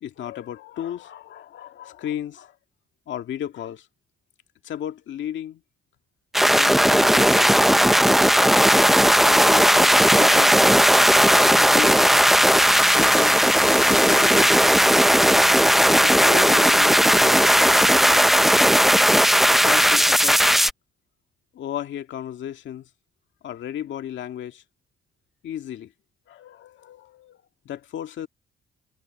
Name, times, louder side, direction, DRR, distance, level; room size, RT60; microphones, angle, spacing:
voice 1, 0.0-2.5 3.1-3.9 4.6-5.6 6.4-8.1 9.3-10.5 11.2-12.0 12.9-13.4 13.9-15.0 15.7-18.3 19.5-20.4 21.5-22.8 23.4-24.6 25.4-25.9 26.3-27.4 27.7-28.3, left 10 dB, 70° left, 2.0 m, -34 dB
sound 1, 6.3-20.7, equal, ahead, 0.7 m, -16 dB
cardioid pair, 90°, 20 cm